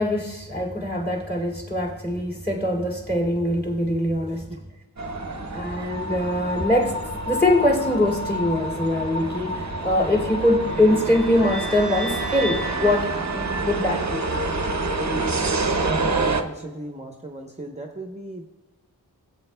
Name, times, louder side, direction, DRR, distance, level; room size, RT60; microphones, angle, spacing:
voice 1, 0.0-4.5 5.5-14.2, left 1 dB, 25° left, 2.3 m, -23 dB
sound 1, 5.0-16.4, right 2 dB, 45° right, 0.8 m, -28 dB
sound 2, 10.7-14.9, right 3 dB, 60° left, 1.6 m, -34 dB
voice 2, 15.6-18.5, right 1 dB, 15° right, 0.8 m, -35 dB
16.0 x 8.2 x 2.2 m
wide cardioid pair, 45°, 40 cm